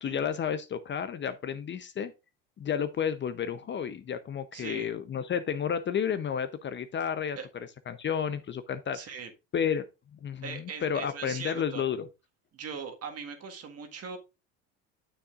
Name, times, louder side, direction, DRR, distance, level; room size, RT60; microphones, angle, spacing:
voice 1, 0.0-2.1 2.6-7.4 7.9-9.1 9.5-9.9 10.2-12.1, left 7 dB, 30° left, 0.7 m, -31 dB
voice 2, 4.5-4.9 7.4-7.5 8.9-9.3 10.4-11.8 12.5-14.2, right 6 dB, 40° right, 1.7 m, -40 dB
9.1 x 7.0 x 2.5 m
hypercardioid pair, 85°, 37 cm